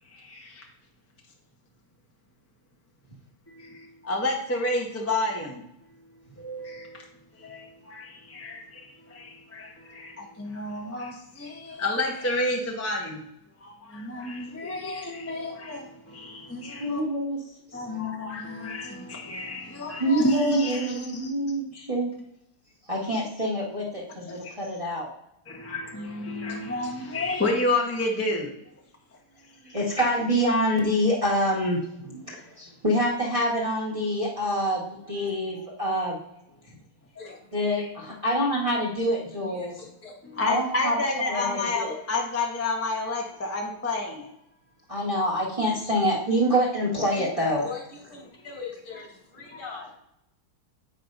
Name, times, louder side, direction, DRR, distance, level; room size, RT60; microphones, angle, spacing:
voice 1, 0.1-0.6 3.5-5.6 6.4-7.0 7.4-13.2 13.6-17.0 17.7-21.2 24.3-24.4 25.5-28.5 40.2-44.3 49.5-49.6, left 2 dB, 15° left, 0 dB, 0.4 m, -30 dB
voice 2, 16.8-17.4 20.0-22.1 22.9-25.1 29.6-36.2 37.5-39.7 40.4-41.0 41.3-41.9 44.9-47.6, equal, 20° right, -5 dB, 1.1 m, -26 dB
voice 3, 37.2-37.5 39.3-39.7 40.0-40.1 46.0-46.1 46.6-46.7 47.6-49.9, left 5 dB, 80° left, -2 dB, 3.2 m, -41 dB
8.5 x 6.4 x 2.6 m, 0.79 s
omnidirectional pair, 2.3 m